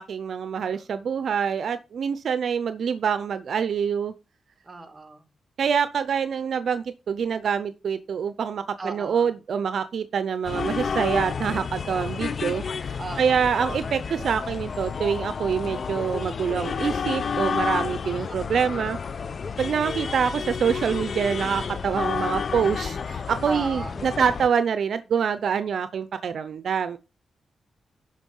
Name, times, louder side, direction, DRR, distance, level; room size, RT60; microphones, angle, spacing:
voice 1, 0.0-4.1 5.6-12.6 13.2-19.0 19.6-27.0, right 7 dB, 70° right, 12 dB, 0.7 m, -25 dB
voice 2, 0.6-0.9 4.6-5.3 8.8-9.3 13.0-13.5 23.5-24.3, right 3 dB, 25° right, 6 dB, 2.4 m, -36 dB
sound 1, 10.4-24.5, left 6 dB, 50° left, 0.6 m, -30 dB
12.0 x 5.4 x 5.4 m, 0.30 s
cardioid pair, 100°, 0 cm